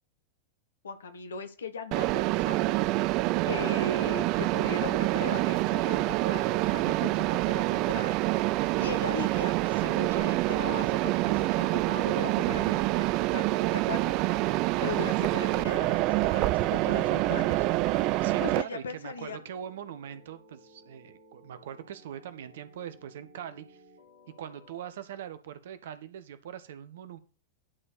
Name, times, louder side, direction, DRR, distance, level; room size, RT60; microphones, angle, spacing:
voice 1, 0.8-2.6 3.4-8.2 8.5-14.1 14.8-17.6 18.4-19.4, left 5 dB, 70° left, 8 dB, 1.6 m, -39 dB
Mechanisms, 1.9-18.6, right 18 dB, 40° right, 0.4 m, -26 dB
voice 2, 18.2-23.8 24.4-27.2, right 9 dB, 60° right, 13 dB, 1.1 m, -42 dB
sound 1, 18.5-24.9, left 1 dB, 90° left, 3.8 m, -57 dB
11.0 x 4.4 x 6.7 m, 0.35 s
figure-of-eight pair, 90°, 0 cm